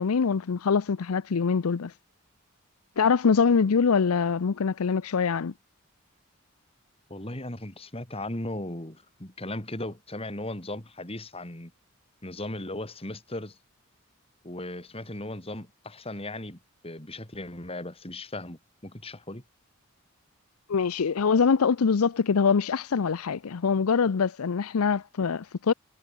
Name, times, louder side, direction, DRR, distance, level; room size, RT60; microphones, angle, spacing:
voice 1, 0.0-1.9 3.0-5.5 20.7-25.7, left 5 dB, 85° left, 0.6 m, -24 dB
voice 2, 7.1-11.7 12.2-13.6 14.4-19.4, left 1 dB, 25° left, 3.7 m, -37 dB
head